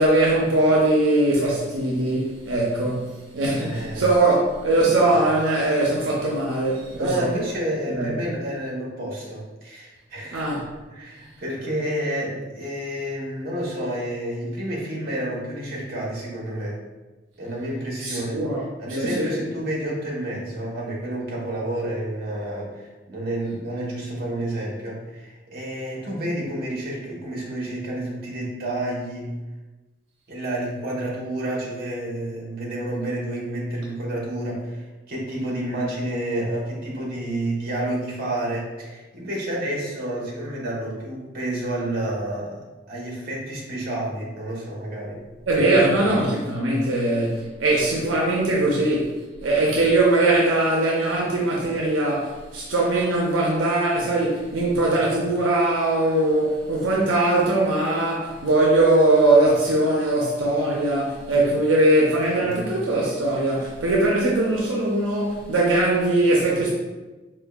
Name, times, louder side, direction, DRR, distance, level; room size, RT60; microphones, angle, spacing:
voice 1, 0.0-7.3 7.9-8.1 10.3-10.6 18.0-18.6 18.9-19.3 45.5-49.1 49.4-66.7, right 2 dB, 90° right, 0.6 m, -21 dB
voice 2, 3.5-4.1 5.0-5.1 6.9-10.6 10.9-16.8 17.4-29.3 30.3-45.2 45.5-46.2 62.4-62.6, right 1 dB, 50° right, 0.9 m, -30 dB
4.3 x 2.2 x 2.2 m
head